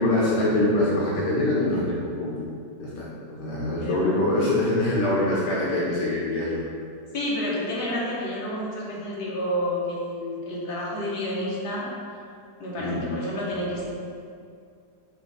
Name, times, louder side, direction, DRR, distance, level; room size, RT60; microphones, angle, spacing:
voice 1, 0.0-2.3 2.8-6.6 12.8-13.1, left 1 dB, 90° left, -6 dB, 1.6 m, -24 dB
voice 2, 3.8-4.3 7.1-11.9 12.6-13.9, left 1 dB, 70° left, -6 dB, 1.8 m, -29 dB
6.9 x 2.5 x 5.6 m, 2.3 s
omnidirectional pair, 1.8 m